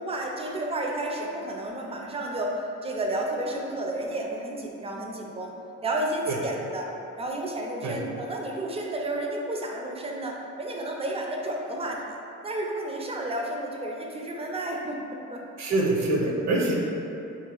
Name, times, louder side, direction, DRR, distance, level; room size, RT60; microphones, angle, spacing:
voice 1, 0.0-2.5 2.8-5.5 5.8-6.9 7.2-12.0 12.4-15.4 16.3-16.5, right 1 dB, 20° right, 0 dB, 0.4 m, -31 dB
voice 2, 15.6-16.7, right 2 dB, 60° right, -1 dB, 0.6 m, -25 dB
3.1 x 2.4 x 3.7 m, 2.7 s
cardioid pair, 90°, 30 cm